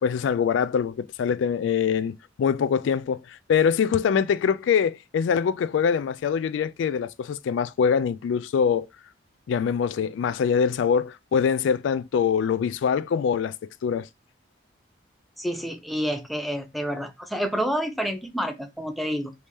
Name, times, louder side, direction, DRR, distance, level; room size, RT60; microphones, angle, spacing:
voice 1, 0.0-8.9 9.5-13.5 13.8-14.1, left 7 dB, 75° left, 0.3 m, -24 dB
voice 2, 15.4-19.3, equal, ahead, 0.4 m, -29 dB
3.5 x 2.7 x 3.0 m
head